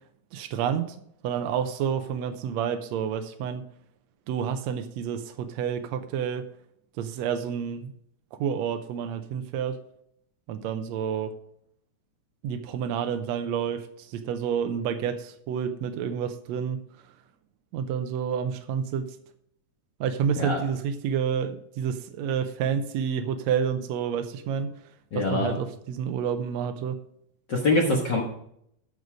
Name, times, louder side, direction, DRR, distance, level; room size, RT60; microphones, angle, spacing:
voice 1, 0.3-1.0 1.2-3.6 4.3-6.5 7.0-7.9 8.4-9.8 10.5-11.3 12.4-16.8 17.7-19.1 20.0-24.7 25.1-27.0, right 7 dB, 80° right, 8 dB, 1.7 m, -29 dB
voice 2, 25.1-25.6 27.5-28.2, left 2 dB, 55° left, 0 dB, 1.2 m, -24 dB
12.5 x 5.3 x 4.9 m, 0.72 s
omnidirectional pair, 3.6 m